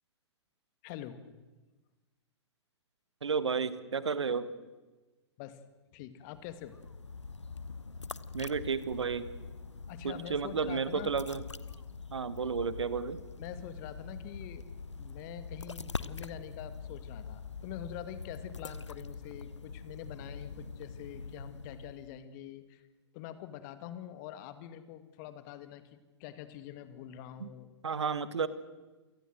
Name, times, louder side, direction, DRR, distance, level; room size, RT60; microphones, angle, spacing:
voice 1, 0.8-1.2 5.4-5.6 5.9-6.7 9.9-11.1 13.4-14.7 15.0-22.8 23.1-25.8 26.2-27.7, left 11 dB, 40° left, 12 dB, 2.1 m, -45 dB
voice 2, 3.2-4.5 8.3-9.3 10.0-11.4 12.1-13.2 27.4-27.5 27.8-28.5, right 5 dB, 75° right, 16 dB, 1.5 m, -32 dB
sound 1, 6.3-22.2, left 4 dB, 85° left, 0.9 m, -44 dB
28.0 x 18.5 x 7.8 m, 1.2 s
figure-of-eight pair, 110°, 15 cm